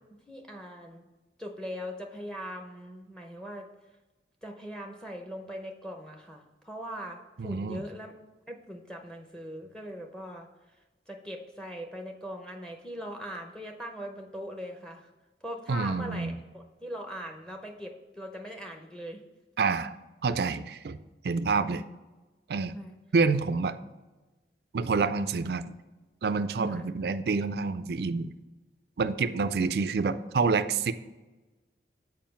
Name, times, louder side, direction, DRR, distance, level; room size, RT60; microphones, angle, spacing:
voice 1, 0.3-1.1 1.4-3.7 4.4-8.1 8.5-10.5 11.1-15.1 15.4-19.2 22.7-22.9 26.7-26.8 29.5-29.6, equal, 5° left, 3 dB, 0.7 m, -40 dB
voice 2, 7.4-7.8 15.7-16.4 19.6-20.0 20.2-21.0 21.2-21.8 22.5-22.8 23.1-23.8 24.7-25.6 26.2-28.4 29.0-30.9, right 4 dB, 60° right, 12 dB, 0.4 m, -27 dB
7.4 x 4.7 x 5.7 m, 1.2 s
head